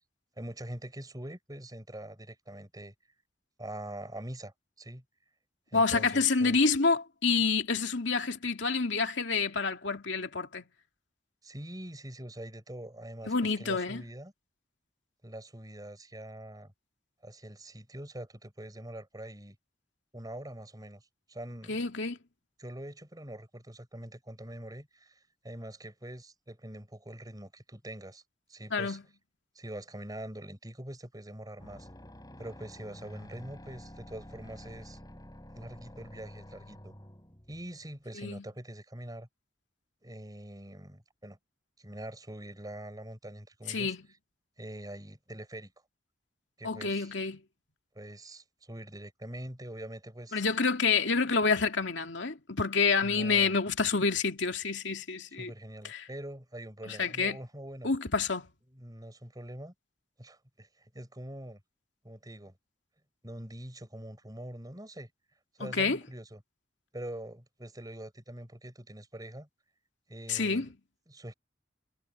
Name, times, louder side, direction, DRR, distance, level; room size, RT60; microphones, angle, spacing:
voice 1, 0.4-2.9 3.6-5.0 5.7-6.7 11.4-14.3 15.2-16.7 17.2-19.6 20.1-21.9 22.6-28.2 28.5-29.0 29.5-31.9 32.4-35.0 35.5-36.9 37.5-39.3 40.0-41.4 41.8-43.9 44.6-45.7 46.6-47.1 47.9-50.4 53.0-53.5 55.4-57.9 58.7-59.7 60.2-61.6 62.0-62.5 63.2-65.1 65.6-66.4 66.9-69.5 70.1-70.7 71.1-71.3, right 1 dB, 20° right, 6.3 m, -44 dB
voice 2, 5.7-10.6 13.2-14.0 21.7-22.2 28.7-29.0 38.2-38.4 43.7-44.0 46.6-47.4 50.3-55.5 55.8-56.1 56.9-57.4 57.8-58.5 65.6-66.0 70.3-70.7, left 4 dB, 70° left, 2.6 m, -28 dB
sound 1, 31.6-37.9, left 1 dB, 20° left, 4.5 m, -49 dB
head